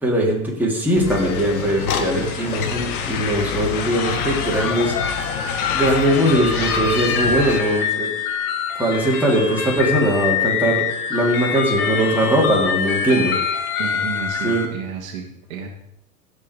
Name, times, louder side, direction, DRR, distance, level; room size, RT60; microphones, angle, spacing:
voice 1, 0.0-8.1 8.8-13.7 14.4-14.7, right 1 dB, 5° right, -4 dB, 3.5 m, -21 dB
sound 1, 1.0-7.6, left 6 dB, 85° left, 1.3 m, -27 dB
sound 2, 1.1-14.7, left 6 dB, 50° left, 1.7 m, -26 dB
voice 2, 13.8-15.7, right 5 dB, 70° right, 2 dB, 1.9 m, -31 dB
16.0 x 5.5 x 4.9 m, 0.77 s
hypercardioid pair, 95°, 43 cm